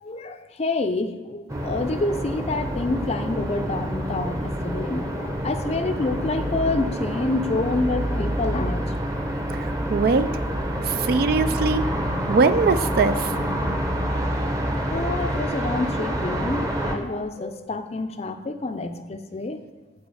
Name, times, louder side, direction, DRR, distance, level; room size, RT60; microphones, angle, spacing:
voice 1, 0.0-8.9 14.7-19.6, left 2 dB, 35° left, 9 dB, 0.5 m, -28 dB
sound 1, 1.5-17.0, equal, 15° right, 0.8 m, -27 dB
voice 2, 9.5-10.3 10.8-11.8 12.3-13.3, right 4 dB, 55° right, 12 dB, 0.4 m, -21 dB
8.2 x 4.5 x 6.2 m, 1.2 s
head